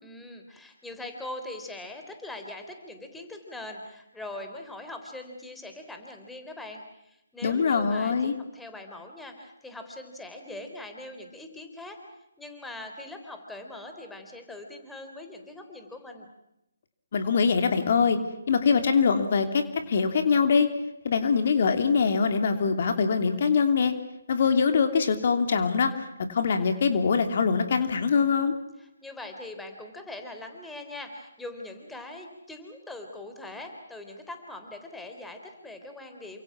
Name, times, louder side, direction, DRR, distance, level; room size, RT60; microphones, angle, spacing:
voice 1, 0.0-12.0 12.4-16.3 28.8-36.4, left 2 dB, 5° left, 4 dB, 3.6 m, -42 dB
voice 2, 7.4-8.3 17.1-18.2 18.5-20.7 21.0-23.9 24.3-25.9 26.3-28.5, left 5 dB, 50° left, 7 dB, 2.9 m, -23 dB
29.0 x 26.0 x 6.2 m, 0.84 s
figure-of-eight pair, 145°, 0 cm